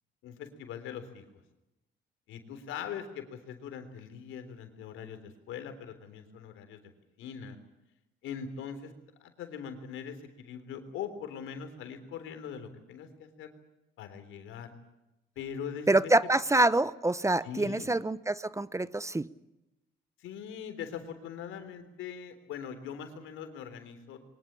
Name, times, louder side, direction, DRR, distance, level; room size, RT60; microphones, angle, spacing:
voice 1, 0.2-1.2 2.3-6.8 7.2-7.6 8.2-8.9 9.2-13.5 14.0-14.7 15.4-16.1 17.4-17.9 20.2-24.3, left 7 dB, 90° left, 8 dB, 3.6 m, -41 dB
voice 2, 15.9-19.3, right 2 dB, 15° right, 17 dB, 0.8 m, -26 dB
23.0 x 20.5 x 8.8 m, 0.94 s
cardioid pair, 90°, 20 cm